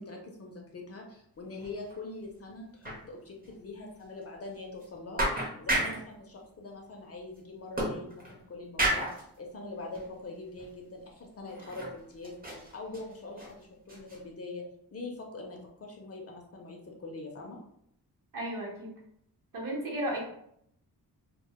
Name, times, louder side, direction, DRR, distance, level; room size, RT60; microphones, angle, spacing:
voice 1, 0.0-14.6 14.9-17.6, left 2 dB, 40° left, 0 dB, 0.4 m, -43 dB
sound 1, 1.6-2.0 2.2-2.3 2.8-3.0 3.4-3.5 4.0-4.1 4.8-4.9 5.2-6.1 7.8-8.4 8.8-9.2 9.9-10.1 10.6-10.7 11.5-12.0 12.2-13.5 13.9-14.2, right 1 dB, 25° right, 0.5 m, -32 dB
voice 2, 18.3-18.9 19.5-20.2, right 1 dB, 55° right, -2 dB, 0.8 m, -34 dB
2.1 x 2.1 x 2.8 m, 0.71 s
wide cardioid pair, 130°, 39 cm